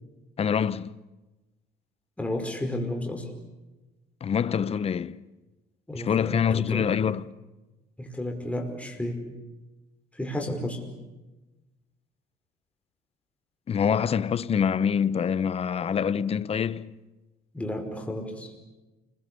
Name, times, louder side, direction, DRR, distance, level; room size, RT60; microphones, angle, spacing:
voice 1, 0.4-0.9 4.2-5.2 5.9-7.3 13.7-16.9, left 7 dB, 35° left, 0.9 m, -25 dB
voice 2, 2.2-3.3 5.9-6.9 8.0-9.2 10.2-10.8 17.5-18.5, left 1 dB, 10° left, 5.2 m, -32 dB
29.5 x 22.0 x 6.9 m
cardioid pair, 110°, 17 cm